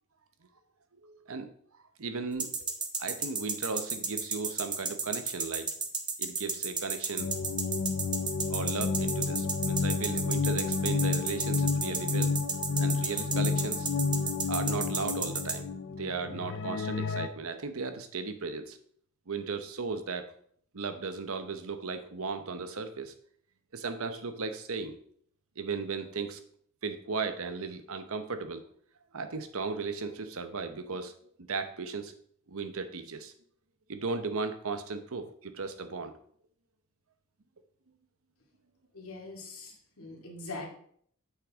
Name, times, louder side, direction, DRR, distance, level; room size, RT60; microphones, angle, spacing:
voice 1, 1.0-1.5 2.0-2.7 3.0-5.7 6.2-7.3 8.5-12.4 12.8-13.9 14.5-15.7 16.0-18.8 19.3-20.3 20.7-23.1 23.7-25.0 25.6-26.4 26.8-28.6 29.1-31.1 31.4-32.1 32.5-33.3 33.9-36.1, right 4 dB, 70° right, 8 dB, 0.9 m, -36 dB
sound 1, 2.4-15.5, right 5 dB, 20° right, 0.9 m, -32 dB
sound 2, 7.2-17.3, left 4 dB, 55° left, 0.5 m, -31 dB
voice 2, 38.9-40.7, left 3 dB, 70° left, -1 dB, 2.3 m, -42 dB
8.3 x 6.5 x 3.6 m, 0.62 s
head